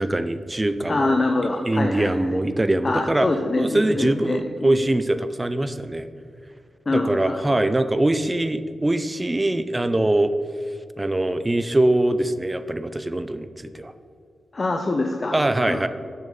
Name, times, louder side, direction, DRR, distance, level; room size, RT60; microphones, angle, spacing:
voice 1, 0.0-1.2 1.7-3.3 3.6-6.1 6.9-10.3 11.0-13.9 15.3-15.9, right 1 dB, 20° right, 12 dB, 0.4 m, -22 dB
voice 2, 0.9-2.4 2.8-4.8 6.9-7.6 14.5-15.3 15.7-15.9, left 2 dB, 40° left, 4 dB, 0.6 m, -25 dB
6.8 x 6.4 x 5.3 m, 2.2 s
cardioid pair, 80°, 0 cm